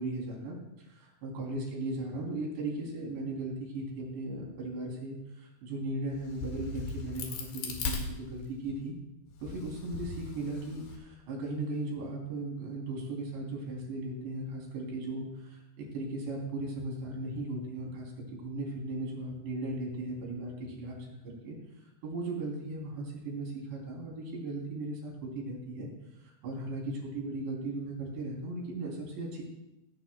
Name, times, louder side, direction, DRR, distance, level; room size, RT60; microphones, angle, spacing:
voice 1, 0.0-8.9 9.4-21.0 21.2-25.9 26.2-29.4, right 2 dB, 85° right, -2 dB, 5.5 m, -37 dB
Crack, 6.1-8.8 9.3-11.0, left 4 dB, 80° left, 4.0 m, -38 dB
17.0 x 16.5 x 2.3 m, 0.94 s
omnidirectional pair, 4.9 m